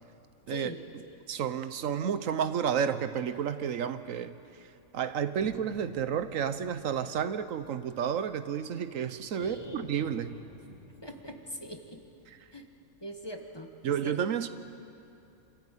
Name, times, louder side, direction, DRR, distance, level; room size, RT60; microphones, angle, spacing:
voice 1, 0.5-0.8 9.3-9.9 11.0-12.0 12.5-12.7 13.0-14.2, equal, 20° left, 3 dB, 1.3 m, -41 dB
voice 2, 1.3-10.4 13.8-14.5, right 8 dB, 80° right, 12 dB, 1.2 m, -31 dB
sound 1, 5.3-8.9 9.4-12.7, equal, 35° left, 3.0 m, -53 dB
26.5 x 13.5 x 9.1 m, 2.7 s
omnidirectional pair, 1.4 m